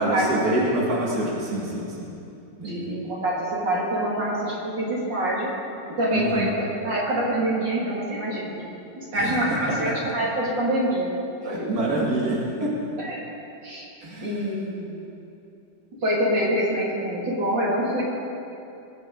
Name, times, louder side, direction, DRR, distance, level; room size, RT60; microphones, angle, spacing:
voice 1, 0.0-2.1 2.6-2.8 6.1-6.5 9.2-9.3 11.4-12.7 14.0-14.4, right 1 dB, 55° right, -5 dB, 2.5 m, -26 dB
voice 2, 2.6-5.5 6.0-8.7 9.0-11.1 11.4-11.7 13.0-13.2 13.6-13.9 14.2-15.0 16.0-18.0, right 1 dB, 85° right, -5 dB, 3.1 m, -26 dB
21.5 x 9.0 x 3.9 m, 2.7 s
omnidirectional pair, 1.9 m